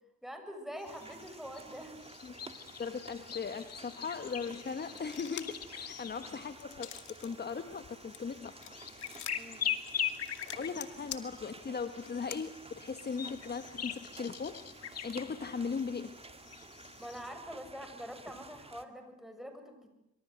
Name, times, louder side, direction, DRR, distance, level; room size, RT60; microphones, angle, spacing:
voice 1, 0.2-2.0 9.3-9.7 10.0-10.1 17.0-19.9, equal, ahead, 6 dB, 7.0 m, -45 dB
sound 1, 0.8-17.3, left 8 dB, 55° left, 2.2 m, -43 dB
sound 2, 0.9-18.9, right 3 dB, 20° right, 2.2 m, -53 dB
voice 2, 2.8-6.9 7.2-8.5 10.5-14.8 15.0-16.2, left 5 dB, 35° left, 9 dB, 1.4 m, -38 dB
sound 3, 5.0-5.7 6.1-7.3 7.7-12.4, left 11 dB, 75° left, 2.4 m, -46 dB
25.5 x 25.0 x 8.0 m, 0.84 s
cardioid pair, 90°, 30 cm